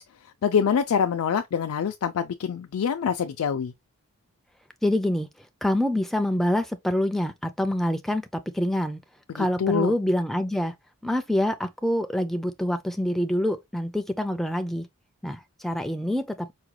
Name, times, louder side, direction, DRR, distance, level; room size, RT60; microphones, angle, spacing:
voice 1, 0.0-3.7 9.3-9.9, left 7 dB, 85° left, 0.4 m, -25 dB
voice 2, 4.8-5.3 5.6-9.0 9.3-10.7 11.0-14.9 15.2-16.5, left 1 dB, ahead, 0.3 m, -26 dB
4.8 x 2.2 x 2.9 m
head